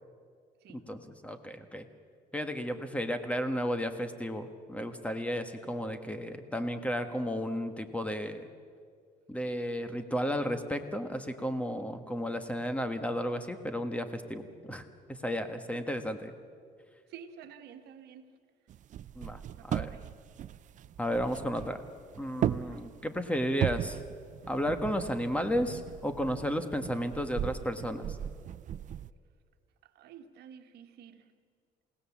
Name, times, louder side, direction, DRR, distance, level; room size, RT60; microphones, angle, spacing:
voice 1, 0.7-1.8 2.3-8.5 9.3-16.3 19.1-19.9 21.0-21.8 22.2-24.0 24.5-28.2, equal, 10° left, 8 dB, 1.5 m, -33 dB
voice 2, 17.1-18.3 19.4-20.1 22.6-22.8 29.8-31.3, right 8 dB, 75° right, 7 dB, 1.4 m, -50 dB
sound 1, 18.7-29.1, right 10 dB, 50° right, 0.5 m, -37 dB
28.5 x 17.0 x 7.3 m, 2.1 s
cardioid pair, 110°, 17 cm